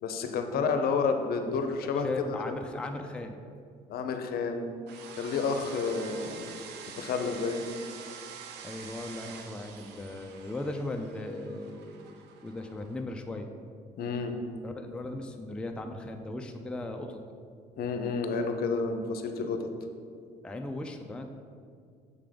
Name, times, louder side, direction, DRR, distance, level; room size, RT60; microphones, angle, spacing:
voice 1, 0.0-2.4 3.9-4.7 5.1-6.5 7.0-7.6 14.0-14.4 17.8-19.7, left 4 dB, 65° left, 6 dB, 0.6 m, -30 dB
voice 2, 1.2-1.6 2.0-3.4 8.6-12.2 12.4-13.5 14.6-17.2 20.4-21.3, left 2 dB, 5° left, 4 dB, 0.4 m, -37 dB
sound 1, 4.9-13.0, right 6 dB, 80° right, 0.6 m, -46 dB
6.8 x 3.6 x 5.0 m, 2.3 s
cardioid pair, 110°, 17 cm